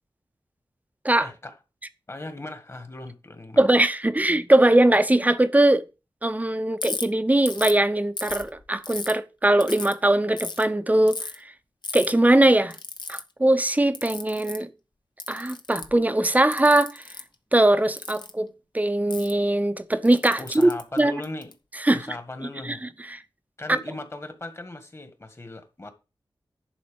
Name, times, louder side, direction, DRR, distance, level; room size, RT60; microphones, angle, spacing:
voice 1, 1.2-1.5 2.1-3.6 20.4-21.5 21.9-22.8 23.6-25.9, left 2 dB, 30° left, 1.8 m, -38 dB
voice 2, 3.6-5.8 6.2-11.5 11.9-12.7 13.1-14.7 15.3-17.0 17.5-18.5 18.7-20.7 21.0-21.1 21.8-22.0 22.6-22.8 23.1-23.2 23.7-23.8, right 1 dB, 20° right, 0.7 m, -20 dB
Ratchet pawl, 6.8-7.0 7.5-7.8 8.2-9.1 9.6-9.9 10.4-10.6 11.1-11.3 11.8-12.1 12.7-13.2 13.9-14.6 15.2-16.0 16.5-17.2 18.0-18.3 19.1-19.3 20.0-21.5, left 4 dB, 60° left, 1.2 m, -34 dB
11.0 x 4.2 x 7.1 m
wide cardioid pair, 105°, 9 cm